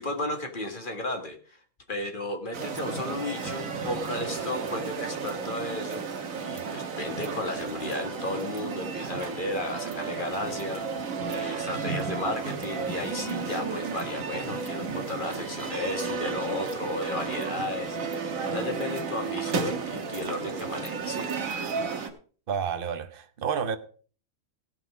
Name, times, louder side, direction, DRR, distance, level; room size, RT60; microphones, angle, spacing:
voice 1, 0.0-1.6 1.9-21.3, left 2 dB, 35° left, 1.8 m, -34 dB
sound 1, 2.5-22.1, right 5 dB, 65° right, 1.6 m, -33 dB
voice 2, 22.5-23.8, right 7 dB, 45° right, 0.9 m, -30 dB
17.0 x 6.0 x 4.9 m
omnidirectional pair, 1.5 m